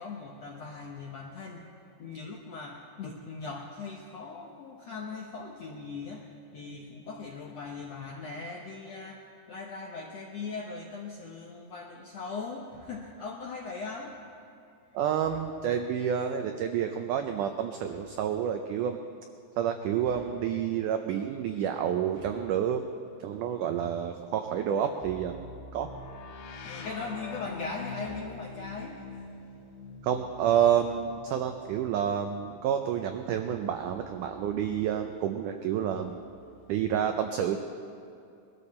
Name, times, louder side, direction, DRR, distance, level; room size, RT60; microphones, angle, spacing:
voice 1, 0.0-1.6 2.0-14.2 26.6-29.3, left 4 dB, 75° left, -1 dB, 1.5 m, -40 dB
sound 1, 12.6-13.2 15.2-15.8 17.7-18.3 20.0-20.8 22.0-22.7, left 1 dB, 55° right, 5.0 m, -54 dB
voice 2, 14.9-19.0 19.6-22.9 23.2-25.4 25.7-25.9 30.0-36.2 36.7-37.6, right 9 dB, 90° right, 6 dB, 1.8 m, -29 dB
sound 2, 25.0-34.8 35.8-36.9, left 3 dB, 90° left, 3.2 m, -46 dB
22.0 x 13.5 x 4.2 m, 2.5 s
omnidirectional pair, 4.4 m